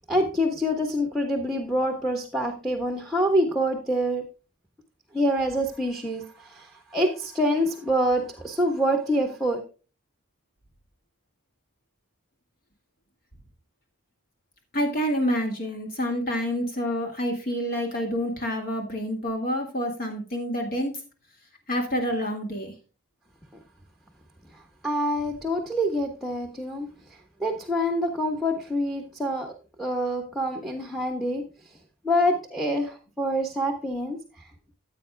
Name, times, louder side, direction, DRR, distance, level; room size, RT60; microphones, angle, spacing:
voice 1, 0.1-4.2 5.1-9.6 24.8-26.9 27.4-31.4 32.0-34.2, equal, ahead, 3 dB, 1.2 m, -26 dB
voice 2, 14.7-21.0 21.7-22.7, equal, 45° left, 2 dB, 2.0 m, -28 dB
14.5 x 8.5 x 2.2 m, 0.34 s
head